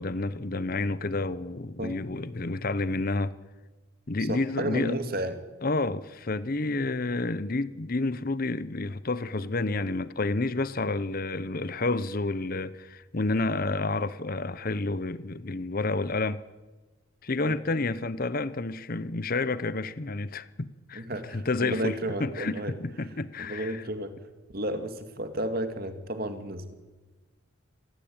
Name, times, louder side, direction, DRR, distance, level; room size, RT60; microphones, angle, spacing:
voice 1, 0.0-3.3 4.1-5.0 5.6-16.4 17.2-21.1 21.3-23.8, left 2 dB, 40° left, 0.8 m, -30 dB
voice 2, 4.2-5.3 17.4-17.5 20.9-22.7 23.0-23.1 23.4-24.1 24.5-26.7, right 1 dB, 45° right, 2.5 m, -32 dB
26.0 x 19.0 x 8.9 m
head